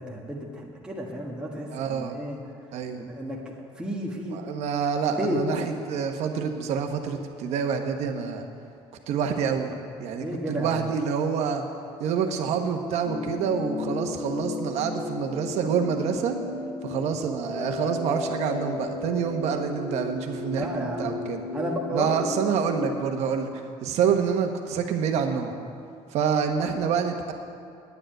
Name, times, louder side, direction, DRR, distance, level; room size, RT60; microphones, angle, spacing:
voice 1, 0.0-2.4 3.0-4.4 5.2-5.4 10.1-10.9 20.5-21.2 21.5-22.1, right 1 dB, 10° right, -3 dB, 1.6 m, -32 dB
voice 2, 1.7-2.1 2.7-3.0 4.3-8.5 9.1-11.6 12.0-16.4 16.8-21.4 21.9-23.5 23.8-25.5 26.1-27.3, right 6 dB, 70° right, 4 dB, 1.4 m, -27 dB
sound 1, 13.0-22.9, left 3 dB, 65° left, 1.9 m, -34 dB
9.6 x 9.4 x 9.1 m, 2.4 s
cardioid pair, 120°, 12 cm